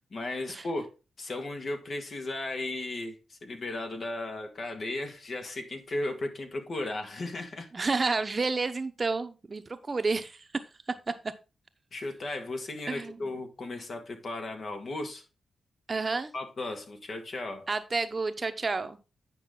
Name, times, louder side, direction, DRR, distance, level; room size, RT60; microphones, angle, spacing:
voice 1, 0.0-7.7 11.9-15.2 16.3-17.7, left 2 dB, 55° left, 1.8 m, -35 dB
voice 2, 7.7-10.5 11.1-11.3 12.9-13.3 15.9-16.3 17.7-19.0, right 3 dB, 40° right, 0.8 m, -30 dB
9.3 x 5.4 x 3.8 m
cardioid pair, 75°, 0 cm